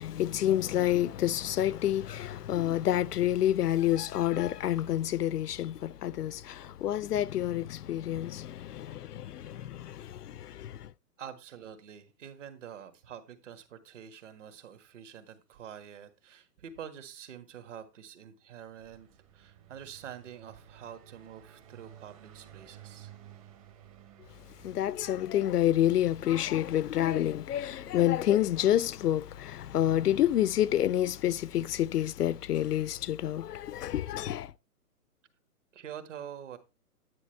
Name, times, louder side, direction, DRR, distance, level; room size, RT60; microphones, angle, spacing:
voice 1, 0.0-10.9 24.6-34.5, left 12 dB, 75° left, 0.6 m, -28 dB
voice 2, 11.2-19.1 19.3-23.1 35.7-36.6, right 9 dB, 50° right, 1.7 m, -46 dB
Car passing by, 18.6-29.2, right 10 dB, 20° right, 0.9 m, -55 dB
9.8 x 9.8 x 3.2 m
hypercardioid pair, 160°, 48 cm